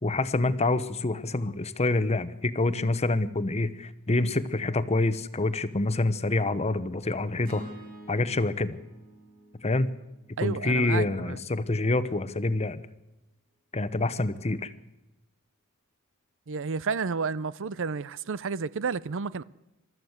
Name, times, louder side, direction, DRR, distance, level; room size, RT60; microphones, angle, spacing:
voice 1, 0.0-7.7 8.1-8.8 9.6-9.9 10.4-12.8 13.7-14.7, left 2 dB, 30° left, 1.0 m, -27 dB
sound 1, 7.4-11.7, right 1 dB, 45° right, 5.7 m, -49 dB
voice 2, 10.4-11.4 16.5-19.4, right 5 dB, 60° right, 0.6 m, -31 dB
23.5 x 13.5 x 8.0 m
head